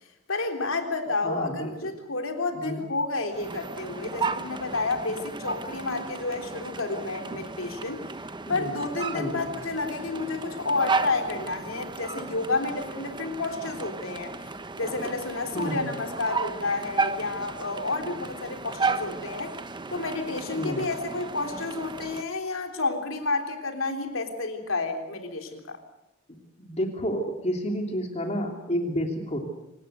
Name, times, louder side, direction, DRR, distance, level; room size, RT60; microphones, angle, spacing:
voice 1, 0.3-8.0 8.5-14.3 14.8-19.6 19.9-25.8, left 3 dB, 80° left, 5 dB, 3.7 m, -30 dB
voice 2, 1.2-1.9 2.5-2.8 8.5-8.7 9.1-9.5 15.5-15.9 20.6-20.8 26.6-29.4, equal, 35° left, 3 dB, 3.1 m, -30 dB
sound 1, 3.3-22.2, right 4 dB, 25° right, 1.1 m, -34 dB
26.0 x 18.5 x 8.2 m, 0.90 s
head